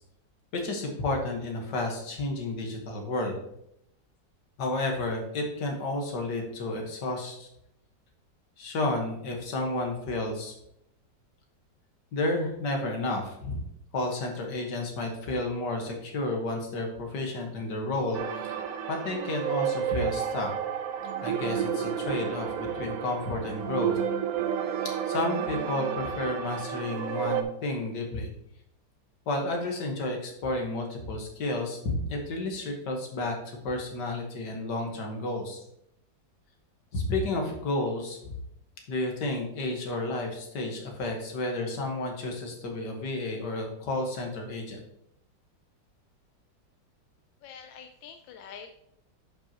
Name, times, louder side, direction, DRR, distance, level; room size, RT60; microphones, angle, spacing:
voice 1, 0.5-3.4 4.6-7.5 8.6-10.5 12.1-13.6 13.9-18.5 18.9-20.5 21.2-24.0 25.1-28.3 29.3-35.6 36.9-38.4 38.9-44.8, left 2 dB, 65° left, 2 dB, 2.0 m, -31 dB
sound 1, 18.1-27.4, right 9 dB, 65° right, 0.9 m, -31 dB
voice 2, 47.4-48.7, left 7 dB, 85° left, 6 dB, 1.3 m, -45 dB
11.0 x 5.4 x 2.9 m, 0.77 s
omnidirectional pair, 2.0 m